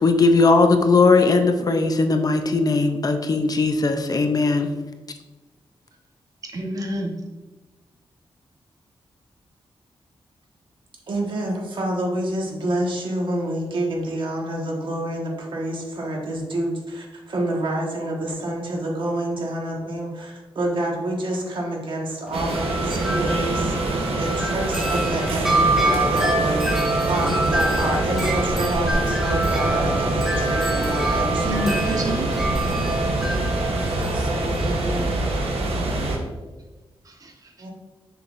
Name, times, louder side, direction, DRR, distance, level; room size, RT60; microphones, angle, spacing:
voice 1, 0.0-4.7, left 3 dB, 40° left, 7 dB, 0.5 m, -18 dB
voice 2, 6.4-7.1 31.4-32.4 34.6-34.7 35.0-35.1 37.2-37.3, equal, 40° right, 2 dB, 1.0 m, -28 dB
voice 3, 11.1-31.6 34.0-35.2 37.6-37.7, right 1 dB, 55° right, -1 dB, 1.4 m, -28 dB
Wind chime, 22.3-35.6, right 2 dB, 5° right, 0.9 m, -26 dB
sound 1, 22.3-36.2, right 2 dB, 90° right, 1.0 m, -25 dB
6.7 x 6.0 x 2.5 m, 1.2 s
wide cardioid pair, 130°, 10 cm